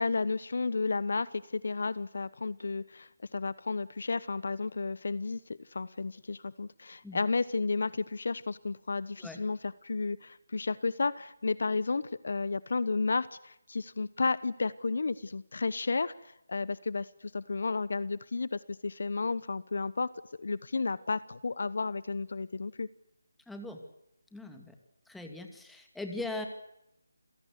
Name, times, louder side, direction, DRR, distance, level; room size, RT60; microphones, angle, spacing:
voice 1, 0.0-20.1 20.4-22.9, left 4 dB, 60° left, 18 dB, 1.0 m, -32 dB
voice 2, 23.5-23.8 24.3-24.7 25.1-26.5, left 2 dB, ahead, 4 dB, 2.6 m, -40 dB
28.5 x 17.0 x 8.3 m, 0.83 s
figure-of-eight pair, 155°, 0 cm